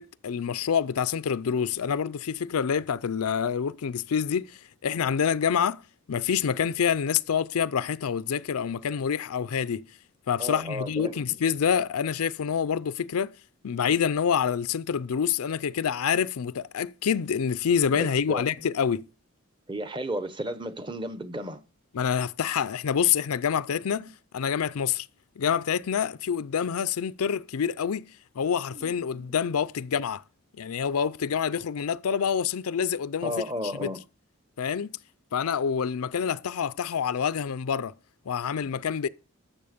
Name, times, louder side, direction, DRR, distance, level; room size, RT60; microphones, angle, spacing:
voice 1, 0.0-5.8 6.1-9.8 10.3-13.3 13.6-19.0 21.9-25.1 25.4-28.1 28.4-30.2 30.6-33.3 33.8-33.9 34.6-35.0 35.3-37.9 38.3-39.1, left 7 dB, 85° left, 0.5 m, -27 dB
voice 2, 10.4-11.2 17.9-18.4 19.7-21.6 24.0-24.1 28.7-29.4 33.2-34.0, equal, 20° right, 0.8 m, -34 dB
12.5 x 7.3 x 5.1 m
head